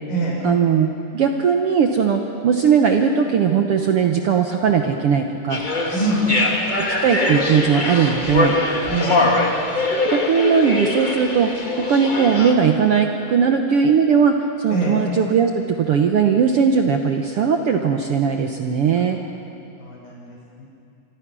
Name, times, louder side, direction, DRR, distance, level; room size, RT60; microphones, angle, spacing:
voice 1, 0.4-5.6 6.8-8.6 10.1-19.2, right 6 dB, 65° right, 4 dB, 1.4 m, -19 dB
sound 1, 5.5-12.5, left 2 dB, 20° left, 1.3 m, -22 dB
voice 2, 5.9-6.4 8.9-9.3 14.7-15.0 19.8-20.6, right 1 dB, 90° left, -4 dB, 7.9 m, -24 dB
27.0 x 24.0 x 6.2 m, 2.6 s
omnidirectional pair, 3.8 m